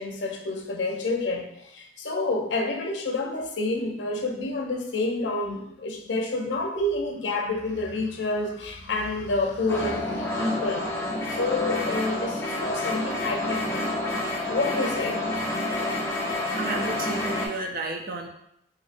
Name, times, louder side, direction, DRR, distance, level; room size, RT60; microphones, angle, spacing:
voice 1, 0.0-10.9 11.3-13.9 14.5-15.2, left 2 dB, 75° left, 2 dB, 0.6 m, -29 dB
sound 1, 9.7-17.5, left 1 dB, 15° left, 0.6 m, -29 dB
voice 2, 16.5-18.3, right 3 dB, 50° right, 4 dB, 0.5 m, -32 dB
4.0 x 2.7 x 2.5 m, 0.78 s
head